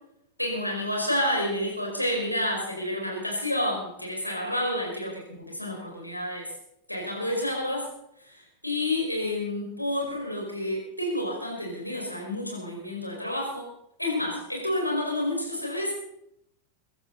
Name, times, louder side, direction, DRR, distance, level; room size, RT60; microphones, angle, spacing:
voice 1, 0.4-6.5 6.9-7.9 8.3-8.4 8.6-13.7 14.0-15.9, left 1 dB, 90° left, -1 dB, 5.1 m, -29 dB
23.0 x 11.5 x 4.1 m, 0.78 s
figure-of-eight pair, 90°, 0 cm